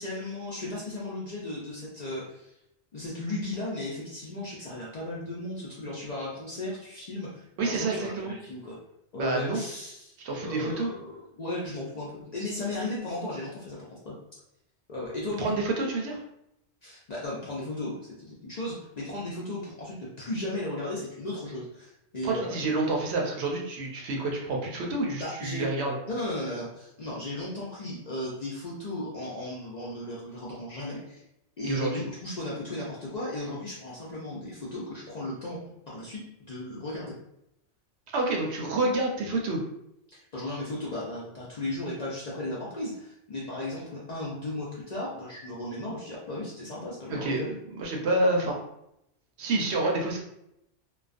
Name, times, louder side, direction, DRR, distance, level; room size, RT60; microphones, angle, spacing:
voice 1, 0.0-2.5 2.9-8.8 9.1-10.2 10.4-13.8 14.0-14.2 14.9-15.5 16.8-17.9 18.3-22.7 25.2-25.7 26.1-31.2 31.6-35.6 35.9-37.1 40.1-47.5, left 1 dB, 50° left, -6 dB, 0.5 m, -35 dB
voice 2, 7.6-8.3 9.2-9.6 10.2-10.9 15.4-16.2 22.2-26.0 31.6-32.0 38.1-39.6 47.1-48.6 49.4-50.2, right 2 dB, 70° right, 0 dB, 0.8 m, -28 dB
2.3 x 2.2 x 2.4 m, 0.80 s
omnidirectional pair, 1.2 m